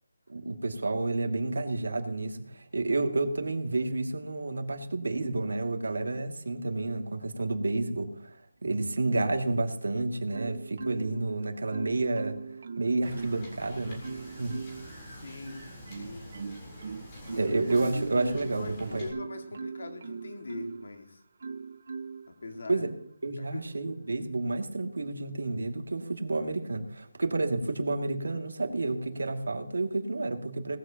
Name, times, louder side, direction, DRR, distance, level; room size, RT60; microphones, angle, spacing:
voice 1, 0.3-12.4 12.8-14.6 17.4-19.0 22.7-22.9 23.2-30.8, right 2 dB, 80° right, 2.4 m, -30 dB
Marimba xylophone, 10.3-11.3 11.7-13.5 14.0-14.9 15.4-20.9 21.4-22.3 22.8-23.1, right 5 dB, 35° right, 0.6 m, -40 dB
Wind / Boat Water vehicle, 13.0-19.1, equal, 15° left, 3.7 m, -46 dB
voice 2, 15.2-15.7 16.0-16.3 17.3-17.5 18.1-21.2 22.3-22.9 23.4-23.6, left 3 dB, 55° left, 2.2 m, -42 dB
19.5 x 14.0 x 3.0 m
hypercardioid pair, 180°, 0 cm